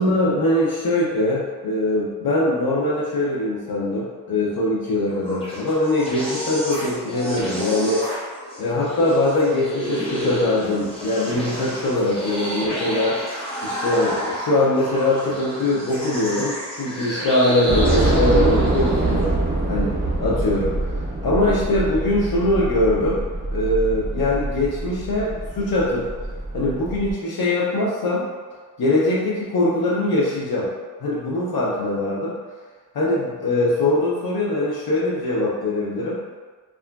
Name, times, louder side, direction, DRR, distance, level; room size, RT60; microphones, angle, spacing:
voice 1, 0.0-8.0 8.6-13.2 13.6-19.4 19.7-19.9 20.2-20.9 21.2-23.2 23.5-26.1 26.5-28.3 28.8-30.7 31.0-32.4 32.9-36.2, left 1 dB, 65° left, -6 dB, 0.5 m, -22 dB
sound 1, 5.1-19.2, equal, 15° left, 0.7 m, -30 dB
Train / Subway metro underground, 17.7-27.1, right 2 dB, 25° right, 0.5 m, -24 dB
2.9 x 2.4 x 2.2 m, 1.4 s
wide cardioid pair, 150°, 39 cm